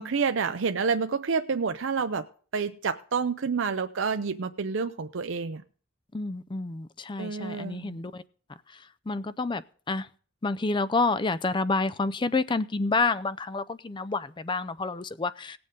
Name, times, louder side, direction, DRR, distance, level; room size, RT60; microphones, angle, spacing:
voice 1, 0.0-2.3 2.5-5.6 7.2-8.0, right 5 dB, 65° right, 8 dB, 0.6 m, -28 dB
voice 2, 6.1-8.2 9.1-9.6 9.9-10.1 10.4-15.6, left 3 dB, 25° left, 16 dB, 0.4 m, -28 dB
18.5 x 7.7 x 3.7 m, 0.44 s
head